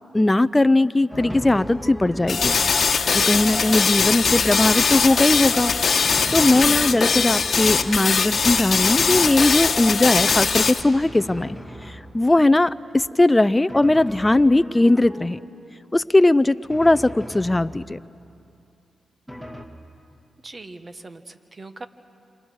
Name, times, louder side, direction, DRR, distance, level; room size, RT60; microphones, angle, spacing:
voice 1, 0.1-2.5 3.1-5.7 6.3-11.6 11.8-15.4 15.9-18.0, left 2 dB, 20° left, 15 dB, 0.5 m, -19 dB
Drum, 1.1-12.5 13.7-15.7 16.7-18.2 19.3-19.7, equal, 10° right, 2.4 m, -38 dB
sound 1, 2.3-10.8, left 5 dB, 55° left, 1.2 m, -21 dB
voice 2, 20.4-21.9, right 2 dB, 40° right, 10 dB, 1.4 m, -40 dB
27.5 x 26.0 x 6.4 m, 2.6 s
supercardioid pair, 55°, 0 cm